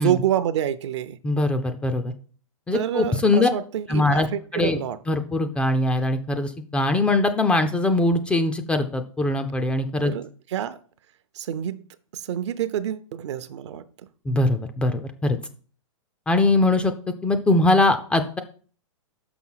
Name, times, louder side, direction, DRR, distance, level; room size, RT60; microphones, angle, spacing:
voice 1, 0.0-1.2 2.7-5.0 10.0-10.8 11.4-11.8 12.1-13.8, right 10 dB, 60° right, 0.6 m, -27 dB
voice 2, 1.2-2.1 2.7-3.5 3.9-4.8 5.1-10.1 14.3-15.4 16.3-16.9 17.2-18.4, left 2 dB, 5° left, 0.4 m, -22 dB
6.0 x 5.9 x 5.5 m
hypercardioid pair, 150°, 17 cm